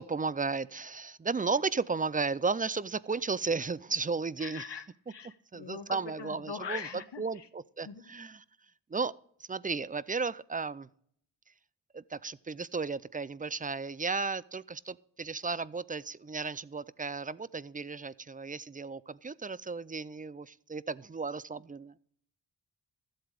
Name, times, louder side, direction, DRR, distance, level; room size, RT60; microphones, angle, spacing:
voice 1, 0.0-4.7 5.5-8.4 8.9-9.1 9.4-10.9 11.9-21.9, right 4 dB, 20° right, 19 dB, 0.3 m, -34 dB
voice 2, 4.4-7.5 7.8-8.0, left 6 dB, 75° left, 9 dB, 1.1 m, -42 dB
13.0 x 7.8 x 5.1 m, 0.65 s
wide cardioid pair, 65°, 43 cm